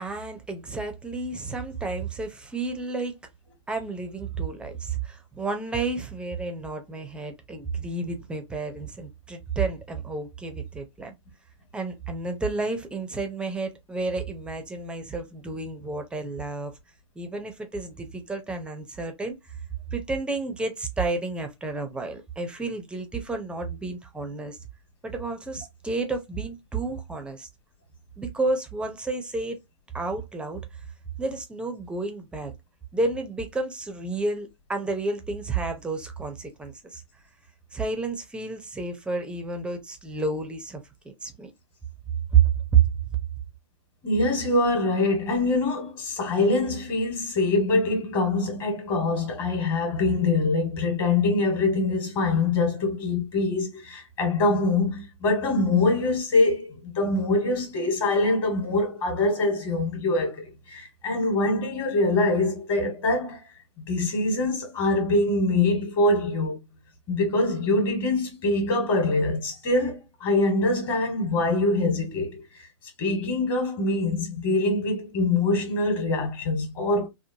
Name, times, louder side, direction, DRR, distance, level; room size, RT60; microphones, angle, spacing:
voice 1, 0.0-3.1 3.7-11.1 11.7-16.7 17.2-19.4 19.9-24.6 25.0-27.5 28.2-29.6 29.9-30.6 31.2-32.5 32.9-37.0 37.7-41.5 42.3-42.4 42.7-42.8, right 4 dB, 5° right, 0.6 m, -30 dB
voice 2, 44.0-60.3 60.7-63.4 63.9-66.6 67.1-72.4 73.0-77.1, left 2 dB, 30° left, 1.4 m, -24 dB
3.0 x 2.2 x 2.6 m
hypercardioid pair, 130°, 16 cm